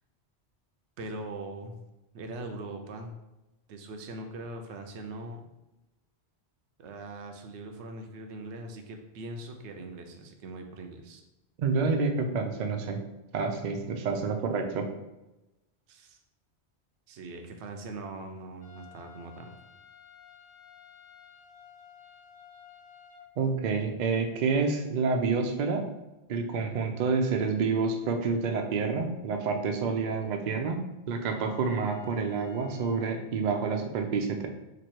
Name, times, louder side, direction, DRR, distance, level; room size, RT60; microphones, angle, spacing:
voice 1, 1.0-1.8 2.1-3.1 3.7-5.4 6.8-11.2 15.9-16.2 17.1-19.5, right 2 dB, 85° right, 4 dB, 0.9 m, -41 dB
voice 2, 11.6-13.0 13.3-14.9 23.4-25.8 26.3-30.8 31.1-34.5, right 4 dB, 55° right, 4 dB, 0.5 m, -28 dB
sound 1, 18.6-23.3 31.2-33.1, left 8 dB, 40° left, 0.3 m, -52 dB
3.0 x 2.6 x 4.3 m, 0.98 s
omnidirectional pair, 1.1 m